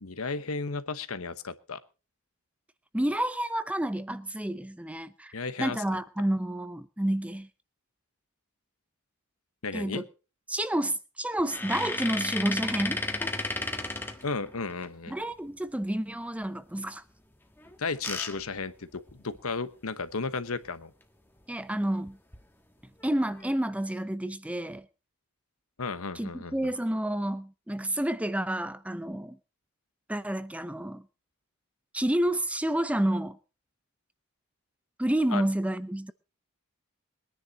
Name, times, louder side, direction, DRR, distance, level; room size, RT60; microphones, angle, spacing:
voice 1, 0.0-1.8 5.3-5.8 9.6-10.0 14.2-15.2 17.8-20.9 25.8-26.7 35.3-35.5, left 4 dB, 80° left, 1.1 m, -34 dB
voice 2, 2.9-5.3 5.6-7.5 9.7-10.1 10.5-13.0 15.1-17.0 21.5-22.2 23.0-24.9 26.1-29.4 30.1-31.0 31.9-33.4 35.0-36.1, right 1 dB, 5° right, 0.6 m, -29 dB
sound 1, 11.4-14.9 17.6-19.5 20.0-20.1 20.4-20.6 22.1-22.4 23.0-23.5, left 2 dB, 10° left, 1.5 m, -34 dB
22.0 x 10.0 x 4.0 m
head